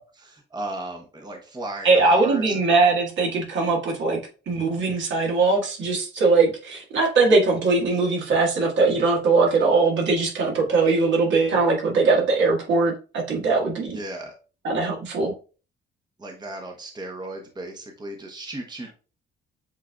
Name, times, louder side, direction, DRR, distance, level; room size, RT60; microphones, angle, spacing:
voice 1, 0.1-2.6 13.9-14.3 16.2-18.9, right 2 dB, 20° right, 3 dB, 0.9 m, -35 dB
voice 2, 1.8-4.2 4.5-14.0 14.6-15.3, right 3 dB, 70° right, -1 dB, 1.6 m, -21 dB
7.3 x 2.7 x 2.3 m, 0.35 s
cardioid pair, 90°, 20 cm